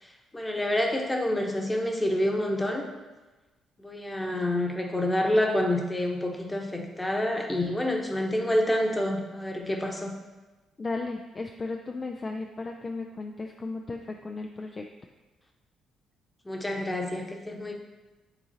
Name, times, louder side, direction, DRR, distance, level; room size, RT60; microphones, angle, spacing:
voice 1, 0.0-2.9 3.8-10.1 16.4-17.7, left 1 dB, 15° left, 2 dB, 1.1 m, -28 dB
voice 2, 10.8-14.8, left 3 dB, 35° left, 2 dB, 0.5 m, -35 dB
9.0 x 3.7 x 2.9 m, 1.2 s
hypercardioid pair, 45°, 0 cm